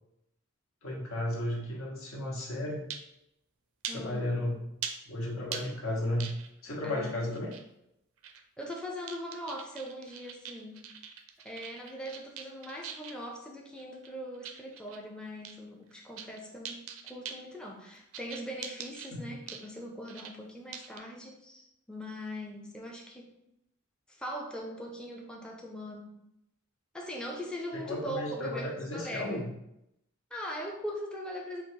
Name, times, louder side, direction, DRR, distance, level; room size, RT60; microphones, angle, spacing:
voice 1, 0.8-2.8 3.9-4.5 5.1-6.3 6.6-7.5 19.1-19.3 27.7-29.5, left 1 dB, 75° left, -1 dB, 1.1 m, -34 dB
sound 1, 2.9-3.1 3.8-4.0 4.8-4.9 5.5-5.6 6.2-6.6 7.3-7.6 8.2-8.8 9.1-13.2 13.8-15.0 15.4-15.6 15.9-16.4 16.6-17.4 18.1-19.1 19.5-19.7 20.1-20.3 20.7-21.0, right 7 dB, 85° right, 0.5 m, -41 dB
voice 2, 3.9-4.3 6.8-7.3 8.6-10.8 11.4-23.3 24.1-26.2 26.9-29.5 30.3-31.6, equal, 5° left, -1 dB, 0.4 m, -41 dB
3.9 x 2.3 x 4.5 m, 0.82 s
head